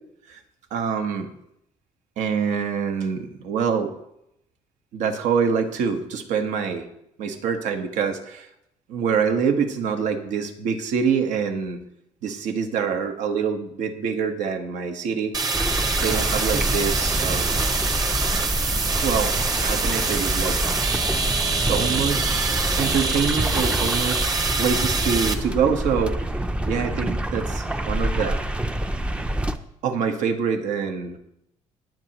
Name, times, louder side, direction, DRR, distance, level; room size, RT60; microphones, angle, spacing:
voice 1, 0.7-1.3 2.2-3.9 4.9-6.9 7.2-8.5 8.9-11.8 12.2-15.3 16.0-17.8 19.0-19.3 19.6-20.6 21.4-26.2 26.6-28.4 29.8-31.2, right 6 dB, 75° right, 6 dB, 1.4 m, -25 dB
sound 1, 15.3-25.3, right 4 dB, 30° right, 1.1 m, -25 dB
sound 2, 15.5-29.6, right 1 dB, 10° right, 0.5 m, -27 dB
19.5 x 7.7 x 3.0 m, 0.78 s
cardioid pair, 150°, 12 cm